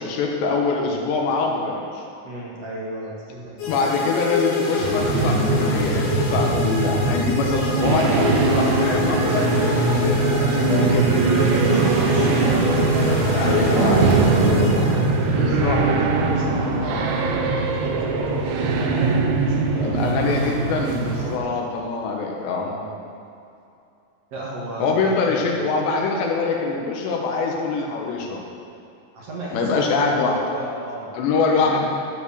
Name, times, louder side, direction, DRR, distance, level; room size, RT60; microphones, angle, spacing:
voice 1, 0.0-2.0 3.7-11.1 13.4-14.0 15.3-15.8 19.8-22.7 24.8-28.4 29.5-30.4 31.1-31.9, left 4 dB, 90° left, 0 dB, 3.4 m, -24 dB
voice 2, 2.2-4.1 8.6-8.9 10.6-11.2 11.5-15.2 16.1-20.5 21.2-21.5 22.7-23.1 24.3-25.6 29.1-31.1, right 1 dB, 60° right, -4 dB, 1.7 m, -34 dB
sound 1, 3.6-15.4, left 4 dB, 70° left, 3.5 m, -27 dB
sound 2, 4.8-21.4, right 3 dB, 85° right, 3.0 m, -21 dB
14.0 x 5.0 x 6.8 m, 2.6 s
omnidirectional pair, 4.8 m